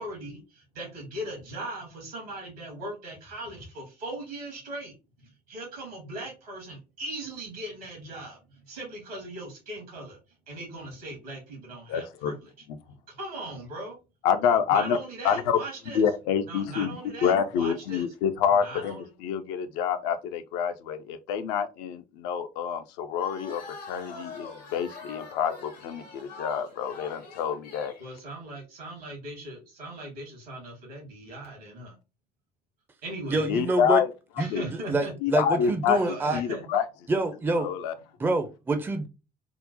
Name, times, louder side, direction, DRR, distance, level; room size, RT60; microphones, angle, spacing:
voice 1, 0.0-4.9 5.2-8.4 8.7-10.2 10.5-12.5 13.1-14.0 14.7-16.0 16.5-18.1 18.6-19.1 28.0-31.9 33.0-33.5 34.4-35.1 35.9-36.6, right 1 dB, 70° right, 1.5 m, -39 dB
voice 2, 11.9-12.3 14.2-15.0 15.2-15.6 15.9-17.0 17.2-23.6 23.9-27.9 33.5-34.1 34.5-34.7 35.2-36.0 36.3-36.8 37.6-37.9, left 7 dB, 55° left, 0.4 m, -27 dB
sound 1, 23.2-28.0, left 4 dB, 75° left, 0.9 m, -43 dB
voice 3, 33.3-34.0 34.4-36.4 37.1-37.7 38.2-39.1, right 2 dB, 10° right, 0.4 m, -27 dB
3.7 x 2.0 x 2.6 m
figure-of-eight pair, 55°, 21 cm